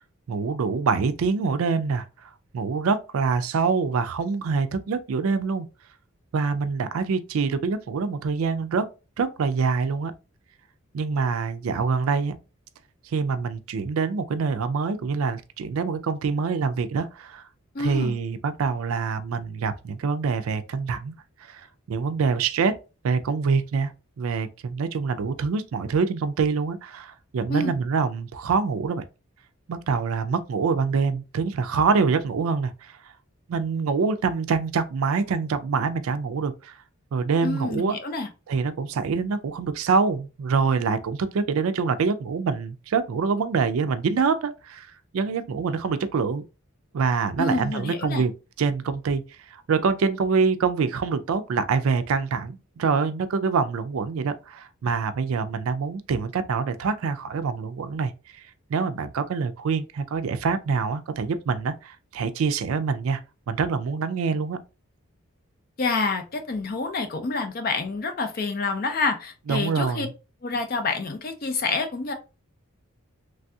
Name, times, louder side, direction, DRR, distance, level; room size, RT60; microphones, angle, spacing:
voice 1, 0.3-5.7 6.3-8.9 9.2-10.1 10.9-12.4 13.0-17.5 17.8-22.7 23.0-29.0 29.7-33.0 33.5-36.8 37.1-38.0 38.5-46.4 46.9-48.3 48.6-58.4 58.7-63.2 63.5-64.6 69.5-70.1, right 5 dB, 75° right, 0.4 m, -25 dB
voice 2, 17.7-18.2 27.5-27.7 37.4-38.3 47.4-48.2 65.8-70.1 70.4-72.1, left 3 dB, 40° left, 0.4 m, -27 dB
3.2 x 2.6 x 2.2 m
head